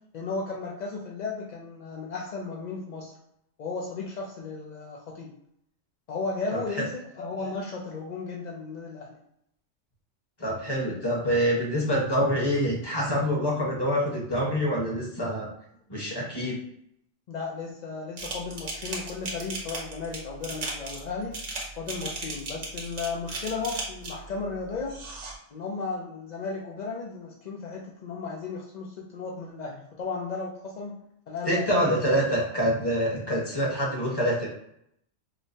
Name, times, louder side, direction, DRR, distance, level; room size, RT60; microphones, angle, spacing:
voice 1, 0.1-3.1 3.6-5.3 6.1-9.1 11.1-11.2 17.3-21.4 21.8-25.0 25.5-31.0 31.3-32.2, left 4 dB, 65° left, -2 dB, 0.4 m, -35 dB
voice 2, 10.4-15.5 15.9-16.6 31.5-34.5, equal, 20° left, -4 dB, 1.0 m, -26 dB
sound 1, 18.2-24.3 24.9-25.3, right 3 dB, 85° right, 1.3 m, -36 dB
5.0 x 2.1 x 2.6 m, 0.74 s
omnidirectional pair, 1.3 m